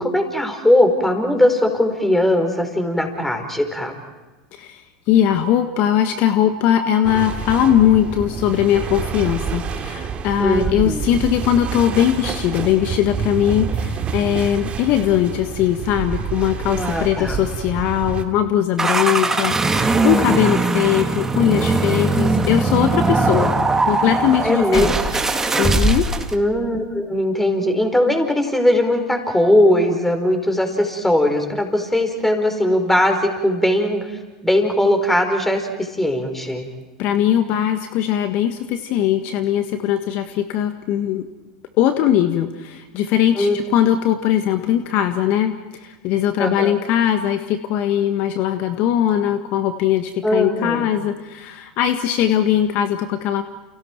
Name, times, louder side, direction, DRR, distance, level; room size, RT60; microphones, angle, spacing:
voice 1, 0.0-3.9 10.4-11.0 16.7-17.4 24.4-24.9 26.3-36.6 43.4-43.6 46.4-46.7 50.2-50.9, left 1 dB, 5° left, 5 dB, 4.7 m, -19 dB
voice 2, 4.5-23.5 23.9-24.9 25.6-26.1 37.0-41.3 41.8-53.4, left 10 dB, 50° left, 8 dB, 1.5 m, -20 dB
sound 1, 7.0-18.2, right 6 dB, 35° right, 2.5 m, -28 dB
sound 2, 18.8-26.3, right 3 dB, 15° right, 2.2 m, -20 dB
30.0 x 29.5 x 4.6 m, 1.2 s
hypercardioid pair, 90°, 4 cm